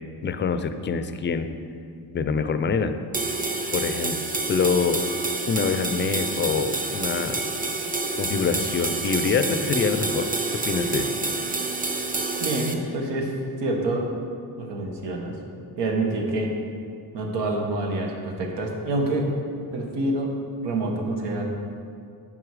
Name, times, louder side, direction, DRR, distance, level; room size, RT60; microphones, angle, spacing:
voice 1, 0.2-1.5 2.1-2.9 3.7-4.2 4.5-5.0 5.5-7.4 8.1-10.3 10.6-11.1, left 5 dB, 30° left, 10 dB, 0.4 m, -25 dB
sound 1, 3.1-12.7, right 3 dB, 20° right, 0.7 m, -28 dB
voice 2, 12.4-13.3 13.6-14.1 14.6-15.3 15.8-16.5 17.1-19.3 19.7-20.3 20.6-21.4, right 2 dB, 85° right, 1 dB, 1.5 m, -27 dB
9.9 x 5.6 x 4.8 m, 2.4 s
cardioid pair, 120°, 40 cm